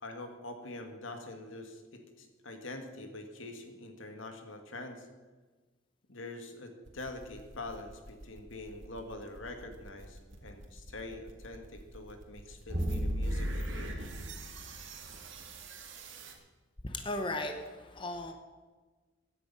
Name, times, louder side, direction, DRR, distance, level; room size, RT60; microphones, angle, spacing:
voice 1, 0.0-5.1 6.1-13.9, left 2 dB, 80° left, 5 dB, 1.9 m, -45 dB
sound 1, 6.8-16.3, right 3 dB, 70° right, 2.2 m, -48 dB
sound 2, 12.7-15.3, equal, 40° right, 4.9 m, -34 dB
voice 2, 16.8-18.3, left 2 dB, 25° left, 6 dB, 0.9 m, -36 dB
15.5 x 10.0 x 5.5 m, 1.3 s
head